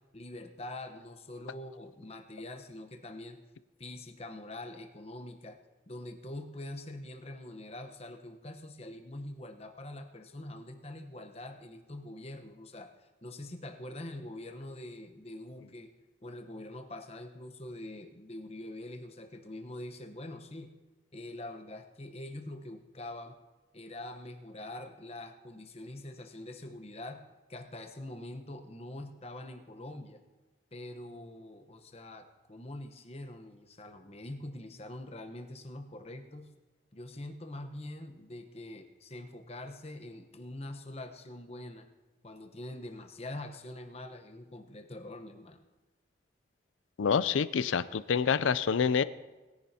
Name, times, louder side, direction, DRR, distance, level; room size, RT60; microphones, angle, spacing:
voice 1, 0.1-3.4 3.8-5.6 5.9-15.9 16.2-20.7 21.1-23.4 23.7-27.2 27.5-30.2 30.7-36.5 36.9-41.9 42.2-45.6, left 1 dB, 30° left, 5 dB, 1.0 m, -44 dB
voice 2, 47.0-49.0, left 6 dB, 85° left, 16 dB, 0.4 m, -27 dB
21.0 x 10.5 x 2.8 m, 1.2 s
head